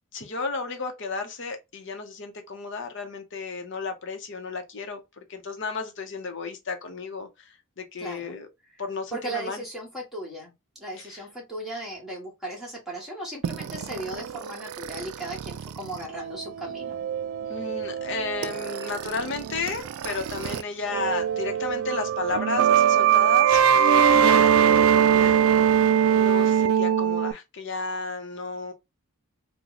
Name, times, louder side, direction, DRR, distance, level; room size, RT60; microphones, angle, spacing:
voice 1, 0.1-8.5 8.8-9.6 11.0-11.2 17.5-25.8 26.1-28.7, left 4 dB, 55° left, 0.8 m, -33 dB
voice 2, 8.0-8.4 9.1-10.5 10.8-17.0, right 1 dB, ahead, 1.4 m, -36 dB
sound 1, 13.4-20.6 20.9-27.3, right 8 dB, 75° right, 0.3 m, -22 dB
3.0 x 2.2 x 3.9 m
head